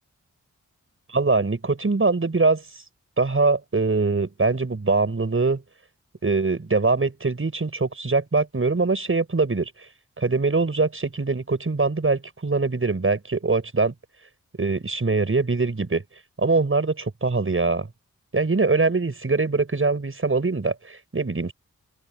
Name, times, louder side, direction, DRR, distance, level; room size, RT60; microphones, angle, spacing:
voice 1, 1.1-2.6 3.2-5.6 6.2-9.9 10.2-13.9 14.6-16.0 16.4-17.9 18.3-21.5, right 3 dB, 45° right, 6.8 m, -23 dB
open air
cardioid pair, 60°, 30 cm